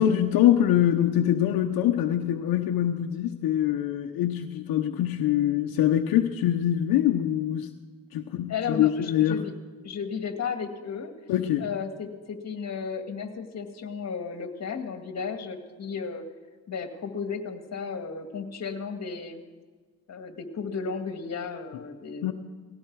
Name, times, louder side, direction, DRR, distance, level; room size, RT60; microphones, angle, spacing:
voice 1, 0.0-7.7 8.1-9.4 11.3-11.7 22.2-22.3, left 11 dB, 80° left, 4 dB, 1.0 m, -24 dB
voice 2, 8.5-9.5 9.8-11.1 11.6-16.2 16.7-19.4 20.1-22.3, left 5 dB, 45° left, 6 dB, 2.1 m, -34 dB
18.5 x 16.0 x 4.8 m, 1.5 s
cardioid pair, 100°, 36 cm